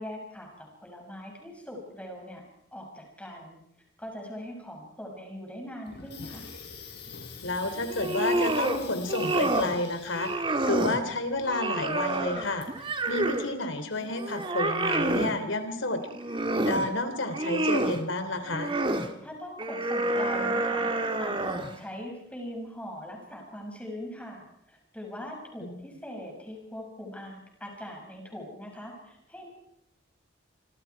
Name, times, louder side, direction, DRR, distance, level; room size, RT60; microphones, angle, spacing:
voice 1, 0.0-2.4 2.7-3.6 4.0-6.5 19.0-20.9 21.2-29.5, equal, 5° left, 0 dB, 6.7 m, -41 dB
Water tap faucet / Sink (filling or washing), 5.8-13.4, left 4 dB, 60° left, 5.7 m, -45 dB
voice 2, 7.4-10.3 10.7-12.7 13.1-16.0 16.6-18.7 25.6-25.8, left 2 dB, 85° left, 9 dB, 3.4 m, -30 dB
sound 1, 7.9-8.8 9.1-9.8 10.1-11.0 11.5-13.5 14.0-15.4 16.0-16.9 17.3-18.0 18.5-19.1 19.6-21.8, right 2 dB, 25° right, 1.9 m, -28 dB
26.0 x 26.0 x 4.8 m, 0.75 s
head